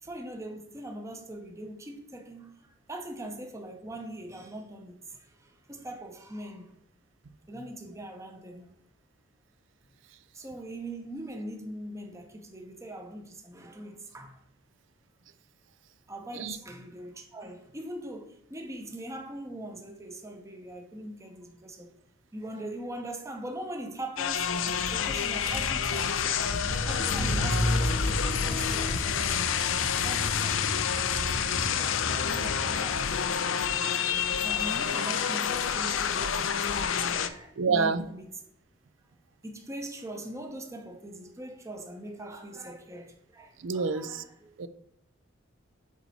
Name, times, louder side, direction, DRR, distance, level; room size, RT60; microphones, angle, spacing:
voice 1, 0.0-6.8 7.5-8.7 10.3-14.4 16.1-21.9 22.3-24.5 24.9-26.4 26.8-29.3 30.0-30.7 31.0-31.3 31.6-34.1 34.4-38.4 39.4-44.5, right 1 dB, 15° right, 0.8 m, -41 dB
sound 1, 24.2-37.3, left 7 dB, 85° left, 0.5 m, -28 dB
Car / Engine, 24.3-24.4 24.6-33.0, equal, 30° right, 1.8 m, -34 dB
voice 2, 37.6-38.0 43.6-44.2 44.6-44.7, right 4 dB, 70° right, 0.5 m, -27 dB
7.3 x 4.1 x 4.2 m
head